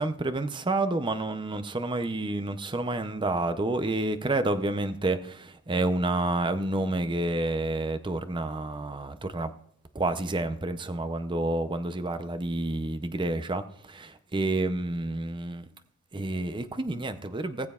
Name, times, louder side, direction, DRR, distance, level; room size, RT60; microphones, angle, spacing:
voice 1, 0.0-9.5 9.9-15.7 16.1-17.7, right 2 dB, 20° right, 0.6 m, -29 dB
19.5 x 7.4 x 2.4 m
head